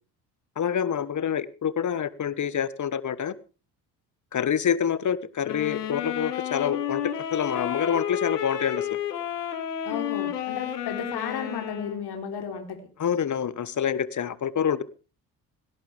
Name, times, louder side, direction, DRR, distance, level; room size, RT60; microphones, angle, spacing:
voice 1, 0.6-3.4 4.3-7.0 7.3-8.9 13.0-14.8, left 8 dB, 40° left, 17 dB, 1.4 m, -27 dB
sound 1, 5.4-12.0, left 10 dB, 90° left, 2.3 m, -31 dB
voice 2, 9.8-12.8, left 7 dB, 55° left, 4 dB, 3.9 m, -33 dB
18.0 x 18.0 x 3.5 m, 0.36 s
hypercardioid pair, 55°, 46 cm